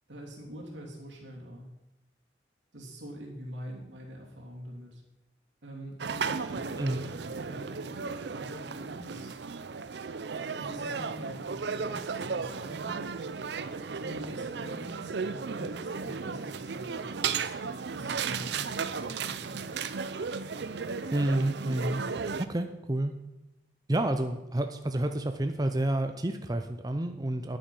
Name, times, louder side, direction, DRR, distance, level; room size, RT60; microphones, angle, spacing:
voice 1, 0.1-1.7 2.7-5.0 5.6-9.3 10.5-13.1 13.9-17.4 17.9-19.7, equal, 85° right, -1 dB, 3.0 m, -44 dB
sound 1, 6.0-22.4, right 5 dB, 70° right, 0.5 m, -35 dB
voice 2, 21.1-22.0 22.4-23.1 23.9-27.6, right 1 dB, 20° right, 7 dB, 0.6 m, -29 dB
10.5 x 8.8 x 5.4 m, 0.95 s
head